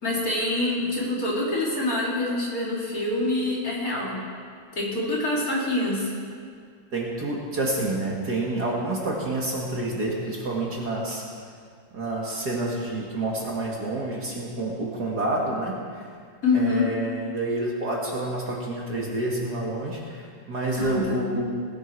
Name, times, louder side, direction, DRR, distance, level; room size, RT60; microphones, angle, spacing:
voice 1, 0.0-4.2 4.8-6.1 16.4-16.9 20.7-21.3, left 2 dB, 40° left, -5 dB, 3.3 m, -25 dB
voice 2, 6.9-11.2 11.9-16.1 16.5-21.5, right 2 dB, 45° right, -3 dB, 2.3 m, -28 dB
19.5 x 10.0 x 4.7 m, 2.1 s
omnidirectional pair, 2.4 m